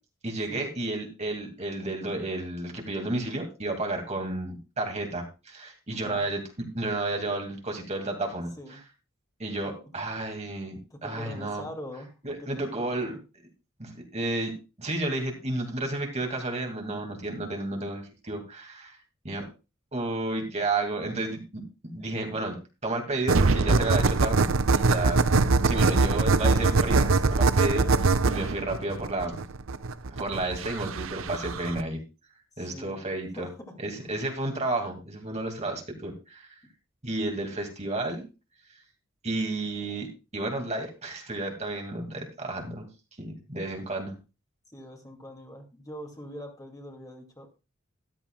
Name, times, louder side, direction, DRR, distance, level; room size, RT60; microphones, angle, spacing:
voice 1, 0.2-6.4 6.7-8.8 9.4-11.7 12.2-13.1 13.8-14.5 14.8-19.0 19.2-19.5 19.9-21.6 21.9-22.6 22.8-24.5 24.7-25.3 25.6-29.4 30.1-32.0 32.6-33.5 33.8-36.5 37.0-38.3 39.2-40.1 40.3-42.8 43.2-44.1, right 2 dB, 35° right, 3 dB, 2.4 m, -32 dB
voice 2, 5.9-6.3 8.6-8.8 9.6-9.7 10.9-12.7 13.0-13.2 25.0-25.1 25.7-26.1 32.6-33.0 33.3-33.5 44.7-47.6, equal, 20° left, 3 dB, 2.4 m, -43 dB
sound 1, 23.3-31.8, right 3 dB, 80° right, 0.7 m, -23 dB
13.5 x 12.5 x 2.3 m, 0.29 s
head